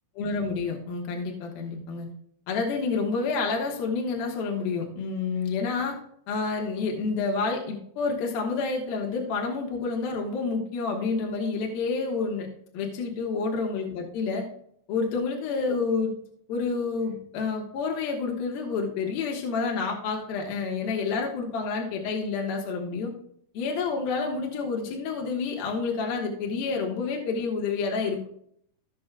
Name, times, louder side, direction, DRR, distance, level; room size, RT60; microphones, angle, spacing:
voice 1, 0.2-2.1 2.5-6.0 6.3-12.5 12.7-14.4 14.9-16.1 16.5-23.1 23.5-28.3, left 4 dB, 65° left, 0 dB, 2.9 m, -29 dB
16.5 x 6.4 x 2.3 m, 0.67 s
omnidirectional pair, 4.9 m